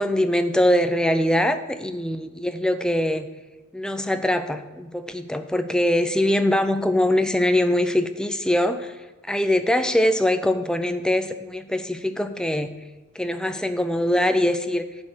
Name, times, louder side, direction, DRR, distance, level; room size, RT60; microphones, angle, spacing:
voice 1, 0.0-3.3 3.7-9.0 9.3-12.7 13.2-14.9, left 1 dB, 5° left, 9 dB, 0.4 m, -22 dB
10.5 x 4.6 x 6.4 m, 1.2 s
head